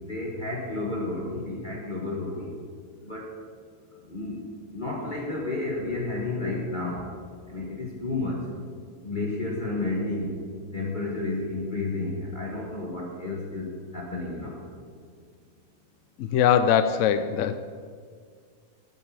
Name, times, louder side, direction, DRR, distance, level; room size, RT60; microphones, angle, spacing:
voice 1, 0.1-2.5 3.0-3.3 4.1-4.4 4.7-7.1 7.5-8.4 9.0-10.3 10.7-13.7 13.9-14.6, left 2 dB, 30° left, -3 dB, 1.6 m, -31 dB
voice 2, 16.2-17.6, left 8 dB, 70° left, 10 dB, 0.7 m, -21 dB
12.0 x 8.2 x 7.5 m, 2.1 s
omnidirectional pair, 1.7 m